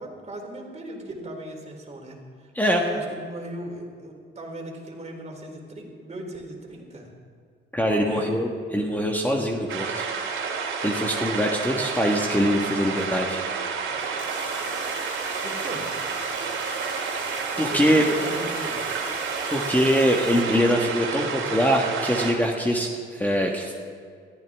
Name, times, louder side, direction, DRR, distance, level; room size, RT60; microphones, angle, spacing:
voice 1, 0.0-2.5 2.9-7.1 8.0-8.3 15.4-15.9 17.7-18.8, right 1 dB, 35° right, 1 dB, 3.5 m, -37 dB
voice 2, 2.5-2.9 7.7-10.1 10.8-13.4 17.6-18.0 19.5-23.7, equal, 10° left, 1 dB, 1.6 m, -23 dB
sound 1, 9.7-22.3, right 5 dB, 80° right, 2.7 m, -30 dB
sound 2, 13.9-20.4, left 3 dB, 40° left, 2.4 m, -41 dB
21.0 x 14.5 x 3.6 m, 2.1 s
cardioid pair, 90°, 20 cm